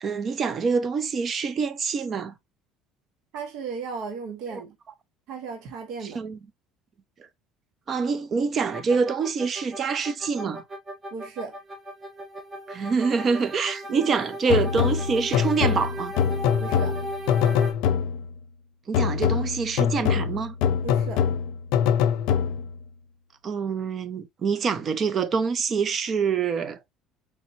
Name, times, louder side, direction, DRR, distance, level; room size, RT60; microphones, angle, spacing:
voice 1, 0.0-2.3 4.5-4.6 6.1-6.4 7.9-10.6 12.7-16.1 18.9-20.5 23.4-26.8, right 5 dB, 30° right, 0.6 m, -26 dB
voice 2, 3.3-4.8 5.3-6.2 11.1-11.5 13.9-14.0 16.6-17.0 20.8-21.2, right 5 dB, 65° right, 1.3 m, -35 dB
sound 1, 8.7-17.7, right 1 dB, 15° right, 1.1 m, -36 dB
sound 2, 14.5-18.4 18.9-22.8, left 8 dB, 70° left, 0.6 m, -24 dB
4.1 x 3.5 x 2.8 m
cardioid pair, 140°, 0 cm